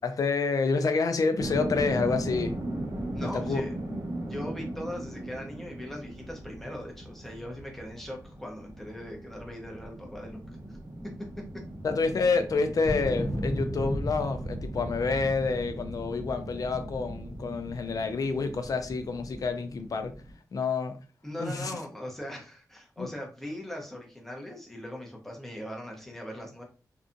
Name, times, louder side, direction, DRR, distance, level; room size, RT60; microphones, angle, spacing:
voice 1, 0.0-2.5 3.2-3.6 11.8-20.1 20.5-20.9 21.4-21.8 23.0-23.1, left 4 dB, 55° left, 0.4 m, -28 dB
sound 1, 1.4-20.3, right 1 dB, 85° right, 1.1 m, -39 dB
voice 2, 3.1-3.7 4.2-10.4 10.7-10.8 11.3-11.4 21.2-26.6, equal, 5° left, 0.7 m, -40 dB
sound 2, 12.8-18.1 18.6-19.4, equal, 35° right, 0.9 m, -36 dB
2.6 x 2.3 x 2.5 m
wide cardioid pair, 175°, 7 cm